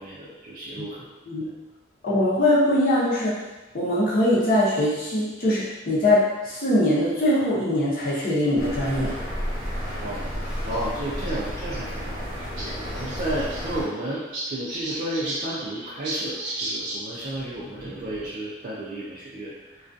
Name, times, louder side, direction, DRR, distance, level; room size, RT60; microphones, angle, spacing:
voice 1, 0.0-1.1 1.4-1.5 10.0-12.2 12.6-19.9, right 1 dB, 45° right, -8 dB, 0.4 m, -33 dB
voice 2, 2.0-3.4 3.7-9.1, left 1 dB, 45° left, -8 dB, 0.7 m, -22 dB
sound 1, 7.9-8.3 9.2-9.3 9.5-9.6 10.7-10.8 11.2-11.8 12.1-12.2 12.4-12.7 12.9-17.0 17.3-18.3, right 1 dB, 80° right, 0.7 m, -35 dB
sound 2, 8.6-13.8, equal, 10° right, 0.9 m, -31 dB
2.3 x 2.3 x 2.5 m, 1.1 s
head